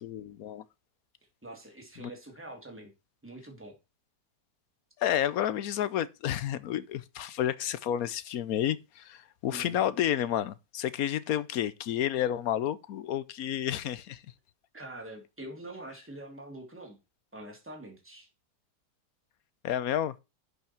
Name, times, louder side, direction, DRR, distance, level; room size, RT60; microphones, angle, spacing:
voice 1, 0.0-0.6 2.0-2.1 5.0-14.2 19.6-20.1, left 11 dB, 65° left, 1.1 m, -30 dB
voice 2, 1.4-2.9 3.2-3.8 9.5-9.7 14.7-17.0 17.3-18.3, right 1 dB, 5° right, 2.8 m, -45 dB
11.5 x 6.0 x 4.4 m
omnidirectional pair, 1.8 m